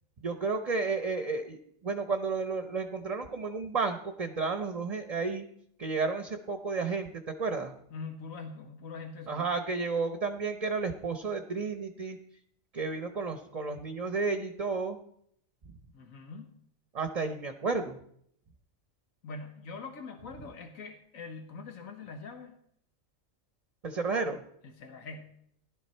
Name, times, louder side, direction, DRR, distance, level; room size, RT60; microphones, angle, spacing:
voice 1, 0.2-1.6 1.8-5.4 5.8-7.1 7.4-7.7 9.3-12.2 12.7-15.0 16.9-18.0 23.8-24.4, right 4 dB, 35° right, 7 dB, 0.8 m, -32 dB
voice 2, 7.9-9.5 15.9-16.6 19.2-22.5 24.6-25.3, left 4 dB, 90° left, 5 dB, 1.6 m, -43 dB
16.0 x 11.5 x 4.4 m, 0.69 s
omnidirectional pair, 1.4 m